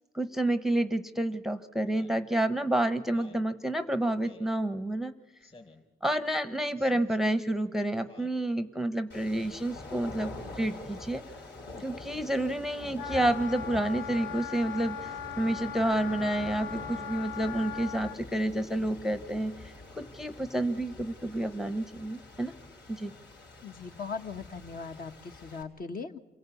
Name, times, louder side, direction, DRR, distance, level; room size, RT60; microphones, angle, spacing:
voice 1, 0.1-5.1 6.0-11.2 11.8-19.5 20.0-22.5 22.9-23.1, right 1 dB, ahead, 11 dB, 0.9 m, -29 dB
Speech synthesizer, 1.9-2.2 3.0-3.5 4.2-4.5 5.4-5.9 6.8-7.2 8.1-8.4 9.3-9.6 10.6-10.8 11.7-11.9 12.8-13.2 14.0-14.4, left 3 dB, 30° left, 3.7 m, -52 dB
sound 1, 9.1-25.6, left 2 dB, 65° left, 4.2 m, -46 dB
Wind instrument woodwind instrument, 12.9-18.2, left 8 dB, 85° left, 1.3 m, -39 dB
voice 2, 23.6-26.2, left 5 dB, 45° left, 6 dB, 1.3 m, -39 dB
27.5 x 18.5 x 8.4 m, 1.2 s
cardioid pair, 90°, 20 cm